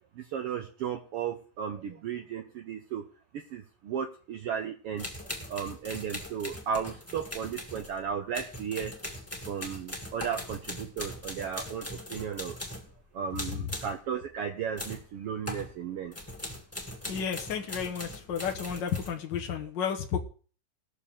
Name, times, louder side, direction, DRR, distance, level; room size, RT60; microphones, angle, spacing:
voice 1, 0.1-3.0 3.3-5.1 5.5-8.9 9.5-12.6 13.1-16.2, right 7 dB, 65° right, 5 dB, 1.5 m, -35 dB
sound 1, 5.0-13.0 13.3-14.0 14.8-15.1 15.5-15.7 16.1-19.1, left 1 dB, 5° left, 1.8 m, -40 dB
voice 2, 17.1-20.2, left 7 dB, 60° left, 3 dB, 1.2 m, -32 dB
20.0 x 6.8 x 3.7 m, 0.39 s
omnidirectional pair, 3.4 m